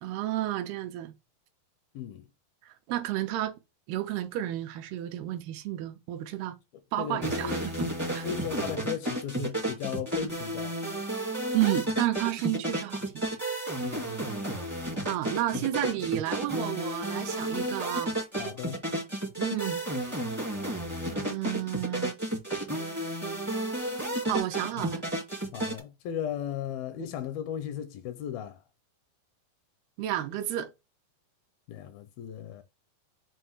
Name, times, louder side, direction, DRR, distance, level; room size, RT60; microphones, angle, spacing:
voice 1, 0.0-1.1 2.7-3.6 3.9-6.6 6.9-7.9 8.2-8.3 11.5-13.3 15.1-18.2 19.4-19.8 21.1-22.2 24.3-25.0 30.0-30.7, right 14 dB, 85° right, 2.6 m, -31 dB
voice 2, 7.0-7.6 8.2-10.8 13.8-14.1 15.5-15.7 18.4-18.8 25.5-28.6 31.7-32.6, left 9 dB, 80° left, 2.4 m, -36 dB
sound 1, 7.2-25.8, right 1 dB, 15° right, 0.5 m, -32 dB
7.6 x 2.6 x 4.7 m
omnidirectional pair, 4.5 m